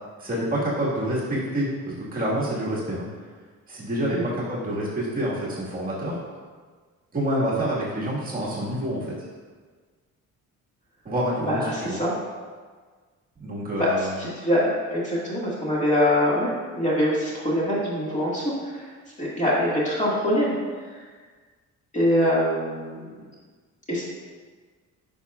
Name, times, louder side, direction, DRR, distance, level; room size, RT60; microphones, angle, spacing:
voice 1, 0.2-3.1 3.7-6.2 7.1-9.1 11.1-12.0 13.4-14.2, right 1 dB, 30° right, -7 dB, 1.6 m, -27 dB
voice 2, 11.5-12.1 13.8-18.9 19.2-20.6 20.9-21.0 21.9-23.0 23.9-24.0, left 1 dB, 25° left, -7 dB, 1.7 m, -24 dB
10.0 x 5.3 x 2.3 m, 1.5 s
cardioid pair, 150°, 31 cm